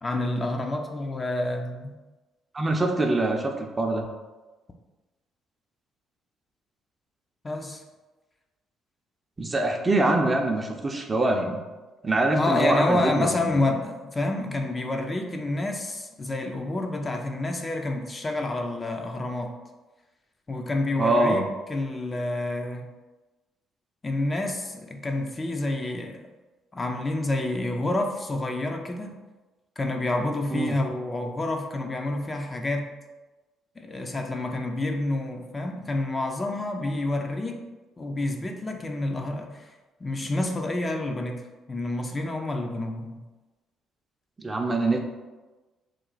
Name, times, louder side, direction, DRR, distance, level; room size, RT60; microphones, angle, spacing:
voice 1, 0.0-1.9 7.4-7.8 12.3-19.5 20.5-22.9 24.0-26.2 26.7-29.2 29.8-32.9 33.8-37.6 38.0-39.7 40.0-43.2, left 2 dB, 30° left, 3 dB, 0.5 m, -28 dB
voice 2, 2.5-4.0 9.4-11.6 12.0-13.6 21.0-21.4 30.5-30.7 44.4-45.0, right 2 dB, 30° right, 3 dB, 0.6 m, -24 dB
3.1 x 2.3 x 3.9 m, 1.2 s
supercardioid pair, 60°, 0 cm